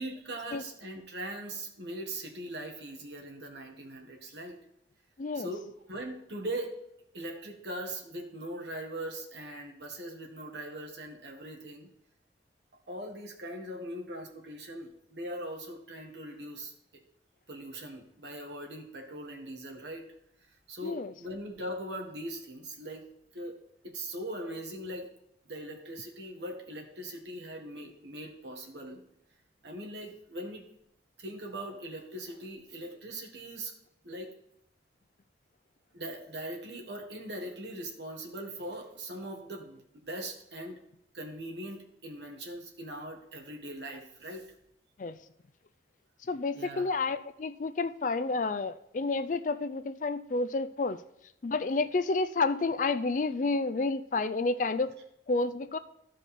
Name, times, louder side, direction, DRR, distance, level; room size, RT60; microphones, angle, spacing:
voice 1, 0.0-4.6 5.3-6.7 7.1-11.9 12.9-17.0 17.5-20.1 20.4-23.0 23.3-23.6 23.8-25.1 25.4-29.0 29.6-30.6 31.2-33.7 34.0-34.3 35.9-40.8 41.1-44.5 46.5-46.9, right 1 dB, 70° right, 2 dB, 1.7 m, -40 dB
voice 2, 5.2-5.5 20.8-21.1 45.0-45.2 46.3-51.0 51.4-54.9 55.3-55.8, left 3 dB, 45° left, 12 dB, 0.4 m, -30 dB
13.5 x 5.0 x 4.3 m, 0.77 s
head